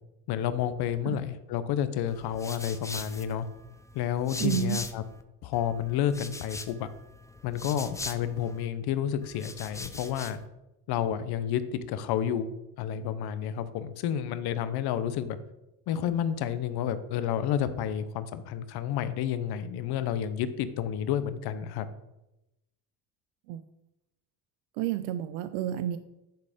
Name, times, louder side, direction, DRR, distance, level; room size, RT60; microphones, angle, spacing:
voice 1, 0.3-3.5 3.9-5.0 5.4-6.9 7.4-10.4 10.9-12.5 12.8-15.4 15.9-21.9, left 9 dB, 65° left, 12 dB, 0.9 m, -30 dB
sound 1, 2.1-5.2 5.5-8.7 9.2-10.5, left 3 dB, 10° left, 0.5 m, -42 dB
voice 2, 4.4-4.8 23.5-23.6 24.8-26.0, right 12 dB, 85° right, 12 dB, 0.6 m, -30 dB
10.5 x 4.2 x 5.1 m, 0.93 s
cardioid pair, 105°, 41 cm